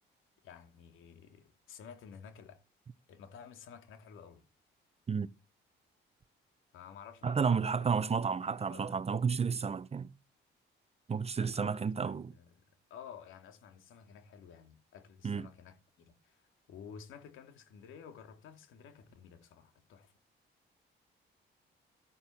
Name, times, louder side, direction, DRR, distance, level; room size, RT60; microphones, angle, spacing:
voice 1, 0.4-2.6 3.1-4.4 6.7-7.9 8.4-9.0 11.4-20.1, left 7 dB, 85° left, 2.9 m, -52 dB
voice 2, 7.2-10.1 11.1-12.3 15.2-15.5, right 6 dB, 30° right, 0.8 m, -31 dB
14.5 x 8.8 x 7.2 m
cardioid pair, 90°, 20 cm